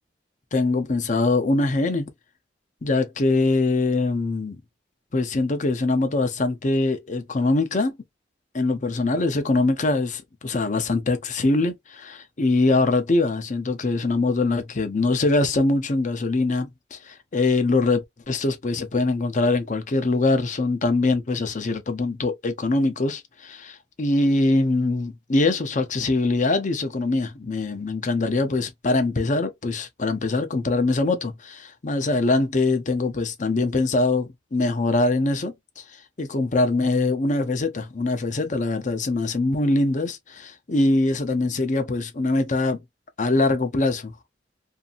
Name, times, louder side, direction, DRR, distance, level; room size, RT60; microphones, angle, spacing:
voice 1, 0.5-2.1 2.8-4.6 5.1-8.0 8.5-35.8 36.2-42.8 43.2-44.1, left 2 dB, 45° left, 0.7 m, -23 dB
2.7 x 2.6 x 2.4 m
head